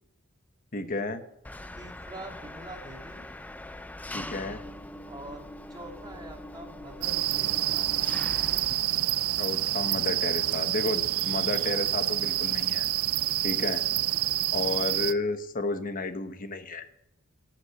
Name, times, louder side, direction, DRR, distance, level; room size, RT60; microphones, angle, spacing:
voice 1, 0.7-1.2 4.1-4.6 9.4-12.9 13.4-13.8 14.5-16.9, left 3 dB, 40° left, 9 dB, 1.0 m, -32 dB
Engine, 1.4-8.9, left 1 dB, 5° left, 0.5 m, -42 dB
voice 2, 1.8-3.2 5.1-7.8, right 1 dB, 20° right, 2 dB, 2.0 m, -45 dB
sound 1, 7.0-15.1, right 13 dB, 80° right, 0.5 m, -27 dB
12.0 x 8.5 x 8.2 m, 0.83 s
head